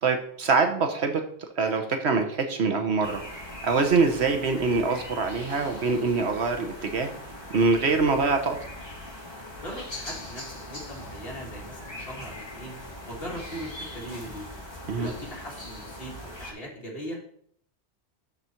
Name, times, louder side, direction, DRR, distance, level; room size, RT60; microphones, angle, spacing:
voice 1, 0.0-1.2 1.6-3.2 3.6-7.1 7.5-8.6 14.9-15.1, right 4 dB, 75° right, 5 dB, 1.3 m, -24 dB
sound 1, 3.0-16.5, left 1 dB, 25° left, 1.8 m, -41 dB
voice 2, 9.6-12.7 13.0-14.5 15.0-17.2, equal, 60° left, -3 dB, 2.5 m, -39 dB
12.0 x 4.1 x 4.4 m, 0.64 s
omnidirectional pair, 1.1 m